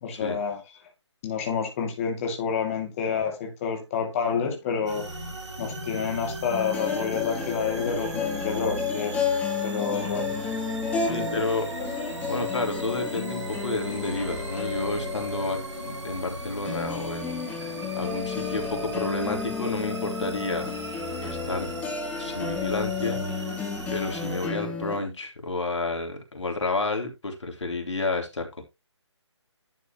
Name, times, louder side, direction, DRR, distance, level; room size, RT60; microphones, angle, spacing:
voice 1, 0.0-0.6 1.2-9.2 9.6-10.4 11.1-11.5, left 6 dB, 30° left, 2.4 m, -29 dB
sound 1, 4.9-24.5, right 2 dB, 70° right, 3.4 m, -37 dB
sound 2, 6.5-25.0, left 6 dB, 10° left, 1.9 m, -32 dB
voice 2, 11.0-11.7 12.3-20.7 21.2-21.7 22.2-23.6 23.9-28.6, left 3 dB, 75° left, 3.3 m, -31 dB
11.0 x 7.0 x 3.0 m
figure-of-eight pair, 150°, 15 cm